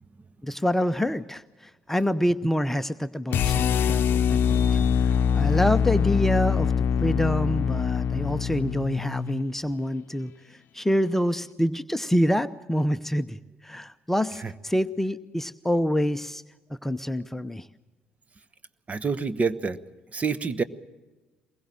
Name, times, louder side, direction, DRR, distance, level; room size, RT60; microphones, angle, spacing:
voice 1, 0.4-10.3 10.7-16.4 16.8-17.7, equal, 5° left, 11 dB, 0.8 m, -27 dB
sound 1, 3.3-9.5, left 7 dB, 50° left, 0.8 m, -23 dB
voice 2, 18.9-19.8 20.1-20.6, right 5 dB, 30° right, 15 dB, 1.1 m, -27 dB
23.0 x 21.5 x 7.6 m, 1.2 s
figure-of-eight pair, 55°, 5 cm